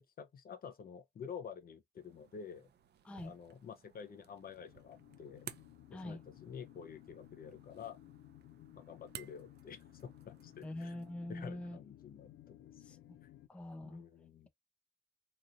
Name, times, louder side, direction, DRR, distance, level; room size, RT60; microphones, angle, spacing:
voice 1, 0.0-2.7 3.2-5.5 5.9-8.0 8.8-11.0 11.3-13.0 13.2-13.3 13.8-14.5, left 7 dB, 45° left, 0.7 m, -49 dB
sound 1, 1.9-11.1, right 10 dB, 55° right, 0.5 m, -57 dB
voice 2, 3.0-3.3 5.9-6.2 10.6-11.8 12.8-13.2 13.5-14.0, left 1 dB, 5° left, 0.3 m, -44 dB
sound 2, 4.2-13.5, left 14 dB, 85° left, 0.4 m, -58 dB
3.0 x 2.5 x 2.4 m
cardioid pair, 90°, 20 cm